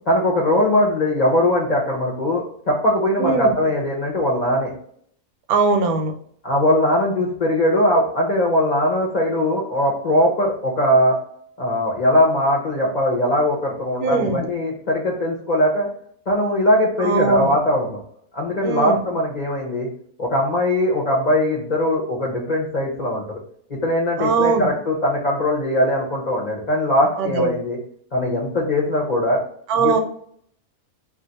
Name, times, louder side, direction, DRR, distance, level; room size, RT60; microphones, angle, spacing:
voice 1, 0.1-4.7 6.4-11.1 11.6-15.9 16.3-18.0 18.3-19.9 20.2-23.4 23.7-27.8 28.1-29.4 29.8-30.0, left 1 dB, 45° left, -3 dB, 0.5 m, -20 dB
voice 2, 3.2-3.5 5.5-6.1 14.0-14.4 17.0-17.5 18.6-19.0 24.2-24.7 27.2-27.5 29.7-30.0, right 4 dB, 80° right, 5 dB, 1.1 m, -20 dB
2.5 x 2.4 x 3.9 m, 0.64 s
omnidirectional pair, 1.6 m